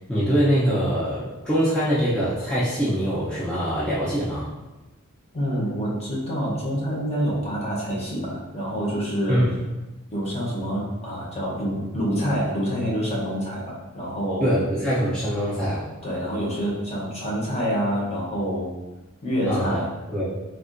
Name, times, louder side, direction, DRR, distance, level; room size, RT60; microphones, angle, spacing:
voice 1, 0.1-4.5 9.3-9.5 14.4-15.9 19.5-19.8 20.1-20.3, equal, 5° left, -10 dB, 0.5 m, -23 dB
voice 2, 5.3-9.4 10.1-14.5 16.0-18.7 19.2-19.9, equal, 30° left, -5 dB, 0.8 m, -27 dB
3.5 x 2.3 x 2.4 m, 1.1 s
head